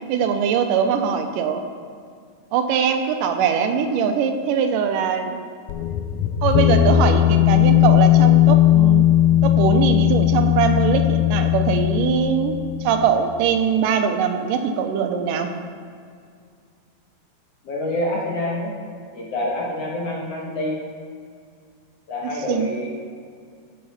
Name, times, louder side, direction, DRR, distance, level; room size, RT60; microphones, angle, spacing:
voice 1, 0.1-1.6 2.5-5.4 6.4-9.0 9.4-15.5 22.5-22.7, right 7 dB, 85° right, 7 dB, 2.3 m, -22 dB
sound 1, 5.7-13.1, left 13 dB, 90° left, 1.6 m, -17 dB
voice 2, 17.6-18.7 19.1-20.8 22.1-22.9, left 1 dB, 55° left, -4 dB, 2.1 m, -26 dB
15.0 x 5.8 x 4.1 m, 2.2 s
omnidirectional pair, 3.8 m